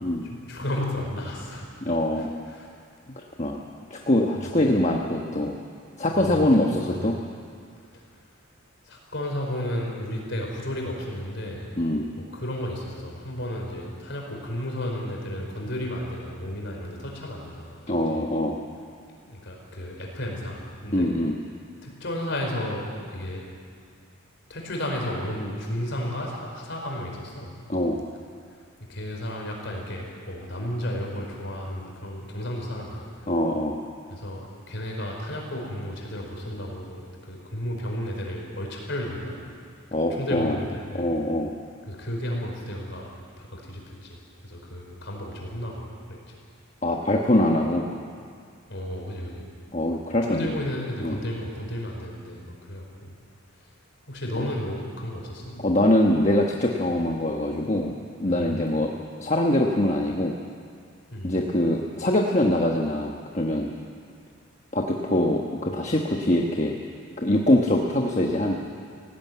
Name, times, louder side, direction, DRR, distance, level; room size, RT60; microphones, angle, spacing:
voice 1, 0.2-1.7 2.1-2.7 4.3-4.7 6.1-7.1 7.9-8.0 8.9-11.7 12.0-18.3 19.2-21.1 21.8-23.4 24.5-27.5 28.9-33.1 34.1-39.4 40.1-41.1 41.9-46.2 48.7-49.5 50.2-53.1 54.1-55.7 58.2-58.6 61.1-61.4 65.7-65.8, left 1 dB, 55° left, 0 dB, 4.9 m, -33 dB
voice 2, 1.8-2.3 3.2-3.6 3.9-5.6 6.0-7.2 11.8-12.1 17.9-18.6 20.9-21.3 27.7-28.0 33.3-33.8 39.9-40.6 40.9-41.5 46.8-47.8 49.7-50.6 51.0-51.2 55.6-57.9 58.2-58.9 59.2-60.3 61.2-63.7 64.7-66.7 67.2-68.5, left 1 dB, 35° left, 0 dB, 1.2 m, -23 dB
18.5 x 17.0 x 9.4 m, 2.2 s
head